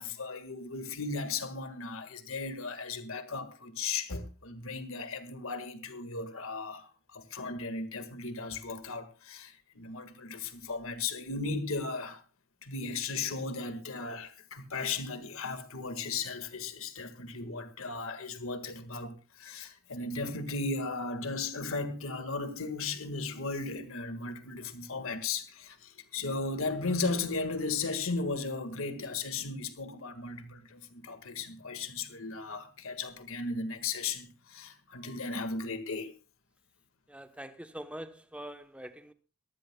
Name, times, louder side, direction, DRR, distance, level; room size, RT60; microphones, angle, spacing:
voice 1, 0.0-12.2 12.6-36.1, left 3 dB, 65° left, 1.7 m, -36 dB
voice 2, 37.1-39.1, right 1 dB, 5° right, 0.9 m, -44 dB
23.5 x 14.5 x 2.3 m
head